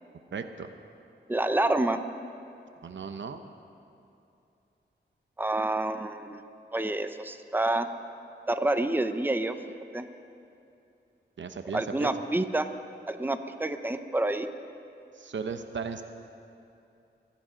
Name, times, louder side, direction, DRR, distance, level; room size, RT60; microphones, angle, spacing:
voice 1, 0.3-0.7 2.8-3.4 11.4-12.1 15.1-16.0, right 5 dB, 80° right, 8 dB, 0.8 m, -36 dB
voice 2, 1.3-2.0 5.4-6.4 6.7-7.9 8.5-9.6 9.9-10.1 11.7-12.7 13.1-14.5, right 2 dB, 10° right, 9 dB, 0.7 m, -28 dB
24.0 x 10.5 x 5.2 m, 2.6 s
wide cardioid pair, 70°, 19 cm